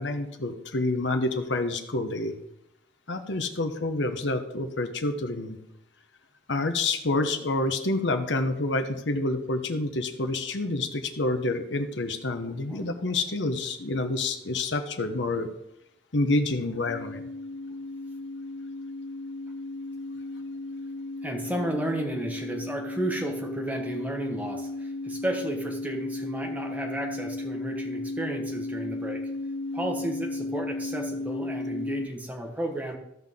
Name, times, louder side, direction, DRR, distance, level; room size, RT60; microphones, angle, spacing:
voice 1, 0.0-2.3 3.1-5.6 6.5-15.5 16.1-17.3, left 2 dB, 80° left, 7 dB, 1.1 m, -28 dB
voice 2, 12.5-13.0 21.2-29.2 29.7-33.0, right 1 dB, 10° right, 1 dB, 1.3 m, -33 dB
sound 1, 16.9-32.1, left 2 dB, 45° left, 0.3 m, -35 dB
15.0 x 5.9 x 3.7 m, 0.80 s
head